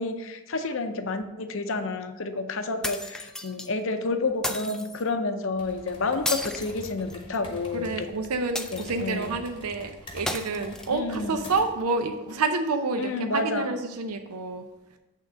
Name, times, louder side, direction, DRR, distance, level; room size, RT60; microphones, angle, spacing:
voice 1, 0.0-8.1 8.7-9.3 10.9-11.4 13.0-13.7, left 3 dB, 60° left, 8 dB, 0.6 m, -30 dB
sound 1, 2.8-3.7 4.4-5.0 6.2-7.5 8.5-9.2 10.3-11.2, left 1 dB, 5° left, 0.3 m, -33 dB
sound 2, 5.5-11.8, left 2 dB, 25° left, 0.9 m, -46 dB
voice 2, 7.7-14.6, right 3 dB, 85° right, 6 dB, 0.6 m, -29 dB
8.4 x 3.7 x 6.1 m, 1.0 s
head